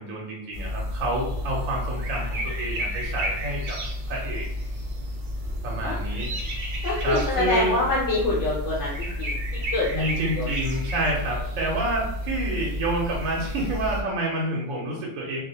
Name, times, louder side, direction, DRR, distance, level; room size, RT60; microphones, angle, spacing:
voice 1, 0.0-3.8 4.1-4.5 5.6-6.3 7.0-7.8 9.9-15.4, right 1 dB, 85° right, -2 dB, 1.0 m, -28 dB
sound 1, 0.5-14.0, left 1 dB, 70° right, 0.4 m, -31 dB
voice 2, 6.8-9.4 9.7-9.9 10.4-10.5, left 2 dB, 70° left, -6 dB, 0.9 m, -25 dB
2.3 x 2.0 x 2.7 m, 0.76 s
omnidirectional pair, 1.4 m